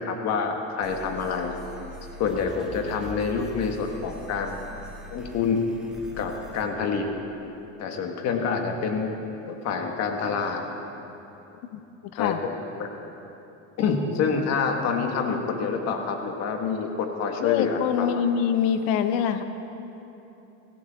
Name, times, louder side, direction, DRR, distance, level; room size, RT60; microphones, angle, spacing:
voice 1, 0.0-1.6 2.2-4.6 5.1-5.6 6.2-7.1 7.8-9.2 9.4-10.6 12.2-12.4 12.7-12.9 13.8-18.1, left 5 dB, 50° left, 3 dB, 1.7 m, -27 dB
sound 1, 0.8-6.6, right 1 dB, ahead, 2.2 m, -43 dB
voice 2, 17.4-19.4, left 8 dB, 80° left, 9 dB, 1.1 m, -24 dB
21.0 x 16.0 x 3.7 m, 3.0 s
cardioid pair, 145°, 33 cm